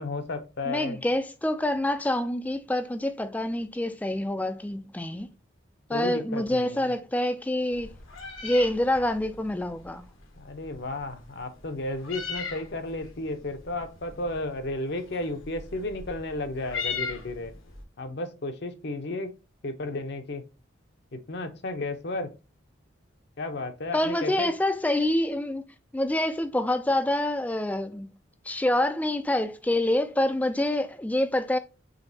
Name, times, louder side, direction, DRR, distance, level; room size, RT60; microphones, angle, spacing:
voice 1, 0.0-1.0 5.9-6.9 10.4-17.5 18.0-19.3 19.6-20.4 21.1-22.3 23.4-24.5, left 2 dB, 55° left, 0.7 m, -33 dB
voice 2, 0.7-5.3 5.9-7.9 8.4-10.1 23.9-25.7 25.9-28.1 28.4-31.6, left 1 dB, 10° left, 0.3 m, -26 dB
Meow, 7.7-17.8, left 5 dB, 85° left, 1.2 m, -40 dB
5.1 x 3.4 x 2.7 m
head